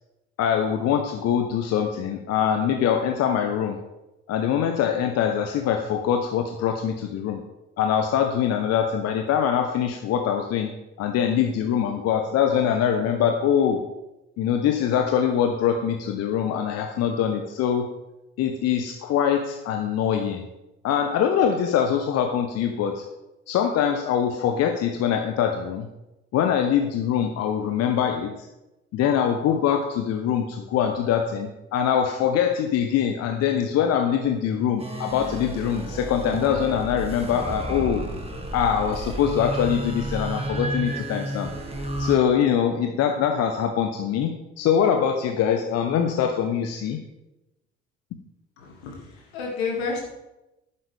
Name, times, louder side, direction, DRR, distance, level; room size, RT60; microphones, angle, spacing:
voice 1, 0.4-3.8 4.3-7.4 7.8-10.7 11.0-13.8 14.4-17.9 18.4-20.5 20.8-23.0 23.5-25.9 26.3-28.5 28.9-38.0 38.5-41.5 42.0-47.0, left 8 dB, 50° left, 5 dB, 1.0 m, -23 dB
sound 1, 34.8-42.1, right 1 dB, 20° right, 1.9 m, -32 dB
voice 2, 48.6-50.0, left 4 dB, 70° left, -1 dB, 2.5 m, -30 dB
11.0 x 9.8 x 3.5 m, 0.98 s
figure-of-eight pair, 55°, 33 cm